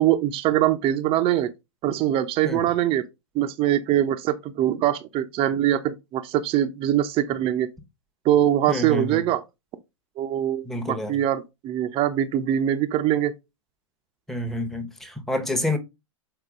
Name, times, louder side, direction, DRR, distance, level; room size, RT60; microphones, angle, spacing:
voice 1, 0.0-1.5 1.8-3.0 3.3-7.7 8.2-9.4 10.2-13.3, right 12 dB, 35° right, 0.8 m, -23 dB
voice 2, 8.7-9.2 10.6-11.1 14.3-15.8, left 1 dB, ahead, 1.2 m, -28 dB
6.8 x 4.4 x 3.7 m
figure-of-eight pair, 105°, 17 cm